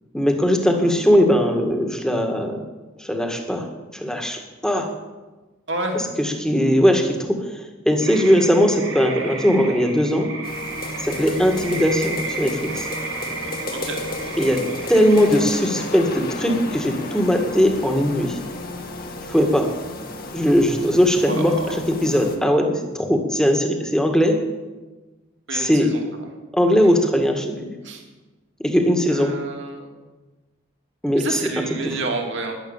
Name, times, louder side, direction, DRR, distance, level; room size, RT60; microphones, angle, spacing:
voice 1, 0.1-2.6 3.0-3.7 3.9-4.9 6.2-7.6 7.9-10.3 11.0-12.9 14.4-14.6 14.9-18.4 19.3-19.7 20.3-24.4 25.5-25.9 26.5-27.7 28.6-29.3 31.0-31.4 31.7-31.9, equal, 5° left, 3 dB, 1.9 m, -19 dB
voice 2, 5.7-6.1 11.3-11.4 13.7-14.0 21.2-21.8 25.5-26.3 27.8-28.0 29.1-29.9 31.2-32.5, right 2 dB, 60° right, 2 dB, 2.7 m, -29 dB
sound 1, 8.0-15.5, right 3 dB, 85° right, 4.3 m, -33 dB
sound 2, 10.4-22.4, left 2 dB, 45° left, 2.1 m, -33 dB
12.0 x 11.0 x 8.9 m, 1.2 s
head